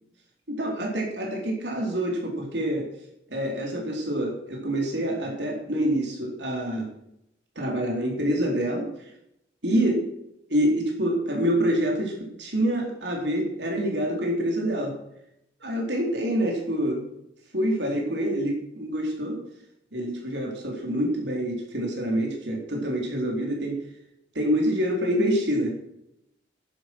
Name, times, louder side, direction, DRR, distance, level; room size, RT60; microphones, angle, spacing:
voice 1, 0.5-2.9 3.3-6.9 7.6-8.9 9.6-10.1 10.5-14.9 15.6-17.0 17.5-19.4 19.9-23.8 24.3-25.7, right 1 dB, 70° right, 0 dB, 4.2 m, -26 dB
11.5 x 11.0 x 6.3 m, 0.79 s
head